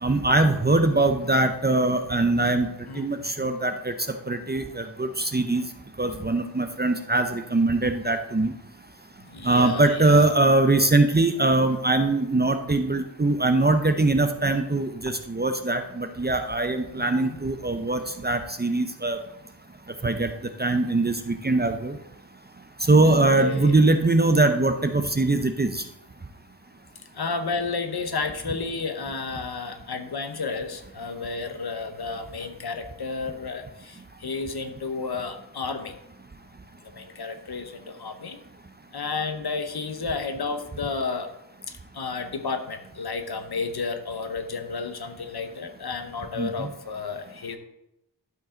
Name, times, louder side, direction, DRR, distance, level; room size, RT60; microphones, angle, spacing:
voice 1, 0.0-2.7 3.0-3.9 4.3-5.6 6.0-8.5 9.4-19.2 20.0-20.3 20.6-22.0 22.9-25.8 46.4-46.7, right 2 dB, 25° right, 7 dB, 0.6 m, -22 dB
voice 2, 2.9-3.5 9.3-10.4 17.0-17.3 23.0-23.8 27.1-35.9 36.9-38.4 38.9-41.3 41.7-47.6, left 4 dB, 60° left, 7 dB, 0.9 m, -32 dB
12.0 x 5.3 x 3.8 m, 0.85 s
wide cardioid pair, 105°, 44 cm